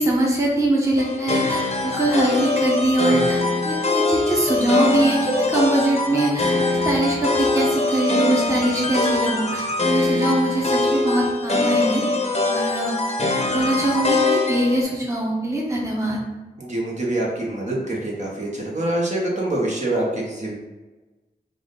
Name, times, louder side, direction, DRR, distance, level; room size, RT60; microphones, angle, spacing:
voice 1, 0.0-6.6 6.8-12.0 12.5-12.9 13.5-16.2, right 1 dB, 15° right, -4 dB, 1.2 m, -22 dB
sound 1, 1.0-14.8, left 3 dB, 40° left, 0.7 m, -22 dB
voice 2, 16.6-20.5, right 1 dB, 45° right, -3 dB, 1.4 m, -25 dB
4.8 x 2.6 x 3.8 m, 1.2 s
cardioid pair, 50°, 16 cm